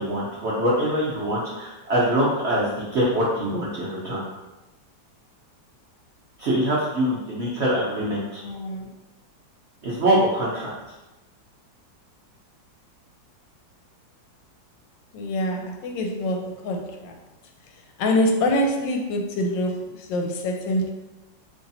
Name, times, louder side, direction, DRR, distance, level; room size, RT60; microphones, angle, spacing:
voice 1, 0.0-4.2 6.4-8.4 9.8-10.7, right 1 dB, 75° right, -6 dB, 0.6 m, -24 dB
voice 2, 8.4-8.9 15.1-17.2 18.0-20.9, left 1 dB, 80° left, 2 dB, 1.2 m, -25 dB
3.1 x 2.7 x 3.9 m, 1.1 s
omnidirectional pair, 2.1 m